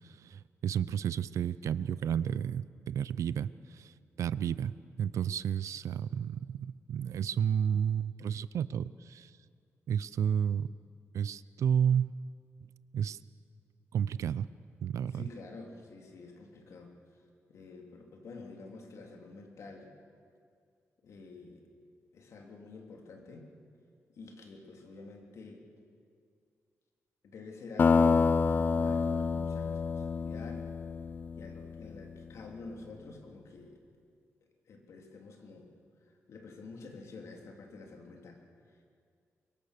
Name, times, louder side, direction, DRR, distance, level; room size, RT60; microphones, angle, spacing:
voice 1, 0.1-3.9 4.2-9.3 9.9-10.7 11.1-12.1 12.9-13.2 13.9-14.5 14.8-15.2, right 8 dB, 75° right, 17 dB, 0.5 m, -31 dB
voice 2, 15.1-16.9 17.5-19.9 21.0-21.6 22.1-23.5 24.1-25.6 27.2-30.6 31.3-33.8 34.7-35.7 36.3-38.4, left 3 dB, 65° left, 2 dB, 3.1 m, -48 dB
sound 1, 27.8-32.1, left 5 dB, 35° left, 0.5 m, -28 dB
24.0 x 22.5 x 6.8 m, 2.3 s
wide cardioid pair, 155°, 5 cm